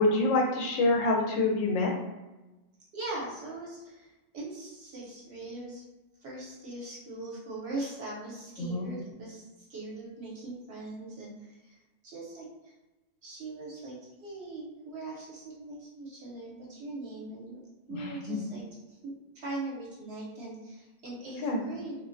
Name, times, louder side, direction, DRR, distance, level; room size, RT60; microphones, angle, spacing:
voice 1, 0.0-1.9 8.6-8.9 17.9-18.4 21.4-21.6, left 2 dB, 85° left, 0 dB, 1.0 m, -26 dB
voice 2, 2.9-5.8 6.2-12.7 13.2-17.6 17.9-22.1, right 2 dB, 60° right, -5 dB, 0.9 m, -41 dB
2.5 x 2.0 x 2.5 m, 1.1 s
omnidirectional pair, 1.3 m